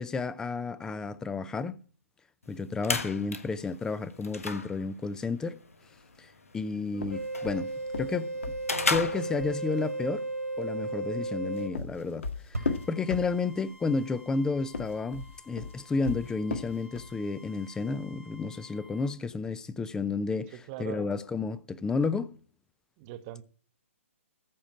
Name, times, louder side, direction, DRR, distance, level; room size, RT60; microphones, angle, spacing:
voice 1, 0.0-1.7 2.5-5.6 6.2-6.3 6.5-7.7 8.0-8.3 8.9-10.2 10.6-12.2 12.5-20.5 20.8-22.4, left 4 dB, 10° left, 0.5 m, -31 dB
sound 1, 2.4-9.9, left 3 dB, 80° left, 1.4 m, -36 dB
sound 2, 6.9-9.6 11.3-13.7 14.6-17.2, left 4 dB, 60° left, 1.9 m, -36 dB
sound 3, 7.1-11.7 12.5-19.1, right 2 dB, 90° right, 2.3 m, -38 dB
voice 2, 20.5-21.1 23.0-23.4, right 15 dB, 30° right, 0.9 m, -41 dB
14.0 x 5.1 x 8.6 m
figure-of-eight pair, 130°, 8 cm